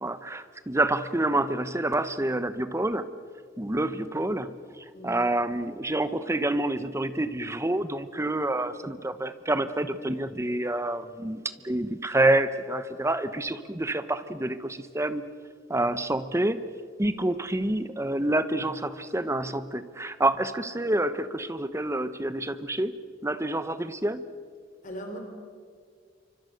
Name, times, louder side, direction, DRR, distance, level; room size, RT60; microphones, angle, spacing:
voice 1, 0.0-3.1 3.6-15.2 15.7-16.6 17.0-22.9 23.2-24.2, right 1 dB, 15° right, 12 dB, 1.0 m, -28 dB
voice 2, 4.9-5.3 24.8-25.2, equal, 45° left, 4 dB, 4.1 m, -39 dB
28.5 x 25.0 x 6.5 m, 2.1 s
head